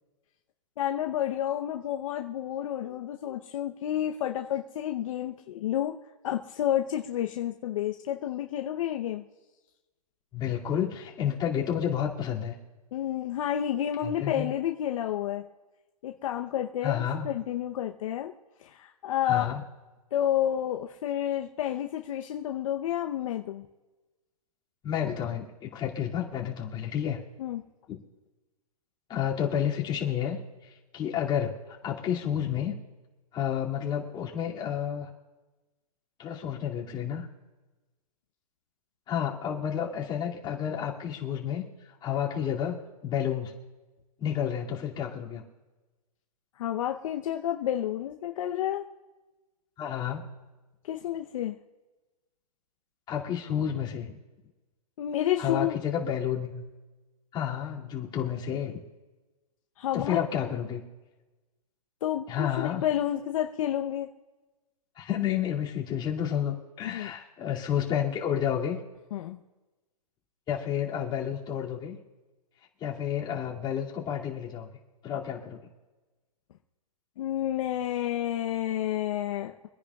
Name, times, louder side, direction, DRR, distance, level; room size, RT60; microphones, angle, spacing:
voice 1, 0.8-6.0 6.2-9.3 12.9-15.5 16.0-18.3 18.6-19.6 20.1-23.6 27.4-27.6 46.6-48.9 50.8-51.5 55.0-55.8 59.8-60.2 62.0-64.1 66.8-67.1 69.1-69.4 77.2-79.5, left 11 dB, 55° left, 3 dB, 0.8 m, -30 dB
voice 2, 10.3-12.6 14.0-14.5 16.8-17.3 19.3-19.6 24.8-27.2 27.9-28.0 29.1-30.4 30.9-31.6 31.8-32.7 33.3-35.1 36.2-37.3 39.1-41.6 42.0-43.5 44.2-45.4 49.8-50.3 53.1-54.1 55.4-56.6 57.3-58.8 59.9-60.8 62.3-62.8 65.0-68.8 70.5-72.0 72.8-74.7 75.0-75.6, left 9 dB, 25° left, -3 dB, 2.5 m, -30 dB
25.5 x 10.0 x 2.4 m, 1.2 s
hypercardioid pair, 135°, 20 cm